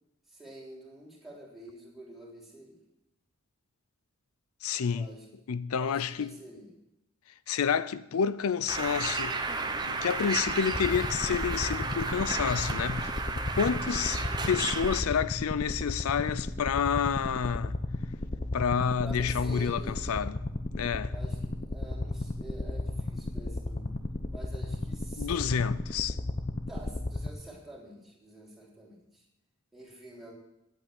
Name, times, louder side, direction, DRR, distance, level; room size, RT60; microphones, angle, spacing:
voice 1, 0.3-2.8 4.9-5.3 5.8-6.7 14.2-14.5 19.0-20.0 21.1-24.0 24.3-25.6 26.7-29.2 29.7-30.3, right 1 dB, ahead, 3.4 m, -48 dB
voice 2, 4.6-5.1 5.5-6.3 7.5-9.4 9.8-13.1 13.6-17.7 18.5-20.4 20.8-21.1 25.2-26.2, left 7 dB, 85° left, 0.4 m, -29 dB
Bird, 8.7-15.0, right 3 dB, 20° right, 0.8 m, -33 dB
sound 1, 10.7-27.3, left 2 dB, 35° left, 0.7 m, -34 dB
11.0 x 8.8 x 8.8 m
head